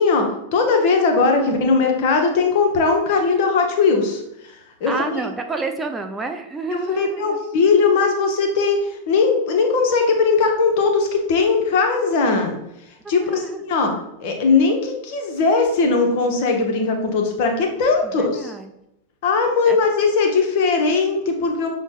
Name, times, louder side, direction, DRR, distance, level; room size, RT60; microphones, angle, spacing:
voice 1, 0.0-4.6 4.8-4.9 6.7-12.6 13.1-13.9 14.2-18.5 19.2-21.7, left 4 dB, 45° left, 3 dB, 0.8 m, -19 dB
voice 2, 4.9-7.4 13.0-13.6 18.0-18.7 19.7-19.8, right 3 dB, 15° right, 4 dB, 0.3 m, -29 dB
6.2 x 2.1 x 3.2 m, 0.84 s
figure-of-eight pair, 90°, 0 cm